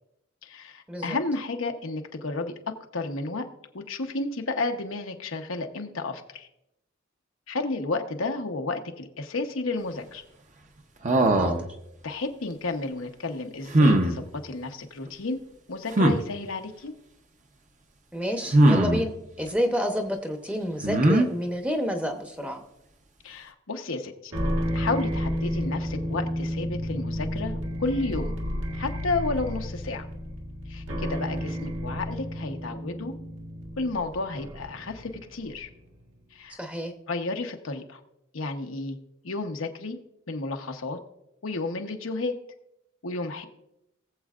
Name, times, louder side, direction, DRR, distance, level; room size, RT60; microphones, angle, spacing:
voice 1, 0.4-2.5 2.9-3.5 3.7-6.5 7.5-10.2 12.0-15.4 15.7-16.9 23.2-24.3 24.7-28.3 28.7-30.0 30.7-33.1 33.8-35.7 36.3-36.6 37.1-38.0 38.3-39.0 39.2-40.0 40.3-41.0 41.4-42.3 43.0-43.5, left 3 dB, 85° left, 4 dB, 1.0 m, -32 dB
sound 1, 11.0-11.7 13.7-14.2 15.9-16.2 18.5-19.0 20.8-21.3, right 1 dB, 40° right, 0.8 m, -19 dB
voice 2, 18.1-19.1 19.4-22.6 36.6-36.9, equal, 5° right, 4 dB, 0.8 m, -29 dB
sound 2, 24.3-35.7, equal, 70° right, 1.7 m, -32 dB
19.5 x 7.5 x 2.5 m, 0.85 s
head